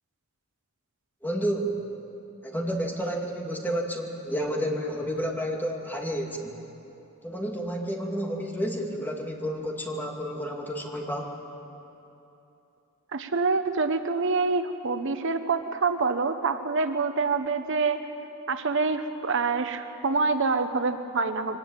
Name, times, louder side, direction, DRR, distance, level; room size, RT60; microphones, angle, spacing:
voice 1, 1.2-1.8 2.4-6.6 7.2-11.3, equal, 10° left, 0 dB, 2.6 m, -30 dB
voice 2, 13.1-18.0 18.5-21.6, right 4 dB, 65° right, 9 dB, 1.0 m, -26 dB
23.5 x 19.0 x 8.9 m, 2.9 s
head